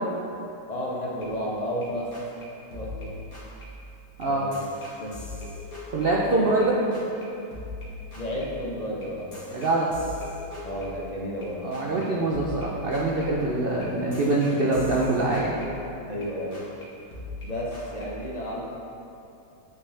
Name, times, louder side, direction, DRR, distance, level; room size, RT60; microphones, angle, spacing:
voice 1, 0.7-2.1 2.7-3.2 4.3-4.6 4.9-5.2 6.3-6.4 8.1-9.4 10.6-12.1 16.1-16.6 17.4-18.6, equal, 35° left, -4 dB, 0.6 m, -32 dB
sound 1, 1.2-1.9 2.1-2.4 2.7-6.7 6.9-7.2 7.5-11.5 11.7-12.0 12.3-16.3 16.5-16.8 17.1-18.0, left 2 dB, 55° left, 2.1 m, -41 dB
voice 2, 5.9-6.8 9.5-9.9 11.6-15.6, right 2 dB, 80° right, -4 dB, 0.5 m, -24 dB
8.8 x 5.2 x 3.4 m, 2.8 s
omnidirectional pair, 1.9 m